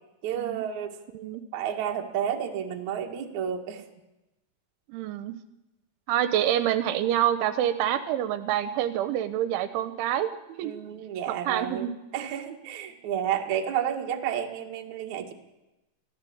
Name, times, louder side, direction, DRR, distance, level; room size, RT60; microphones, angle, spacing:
voice 1, 0.2-1.0 1.5-3.8 10.6-11.9 12.1-15.3, right 9 dB, 55° right, 3 dB, 2.3 m, -31 dB
voice 2, 4.9-5.3 6.1-10.7 11.3-11.9, right 11 dB, 80° right, 12 dB, 3.2 m, -27 dB
24.5 x 16.0 x 8.6 m, 0.99 s
omnidirectional pair, 5.7 m